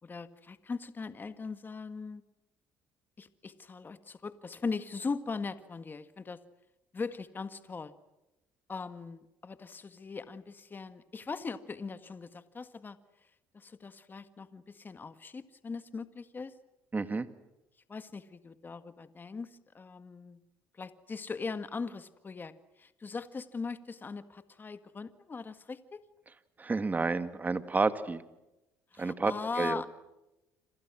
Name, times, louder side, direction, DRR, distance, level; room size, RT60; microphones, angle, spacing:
voice 1, 0.0-2.2 3.2-6.4 6.9-7.9 8.7-13.0 13.5-16.5 17.9-20.4 20.7-26.0 28.9-29.9, left 4 dB, 30° left, 11 dB, 1.8 m, -40 dB
voice 2, 16.9-17.3 26.6-28.2 29.0-29.3 29.6-29.8, right 3 dB, 25° right, 11 dB, 2.2 m, -30 dB
30.0 x 26.5 x 6.3 m, 0.95 s
supercardioid pair, 80°, 7 cm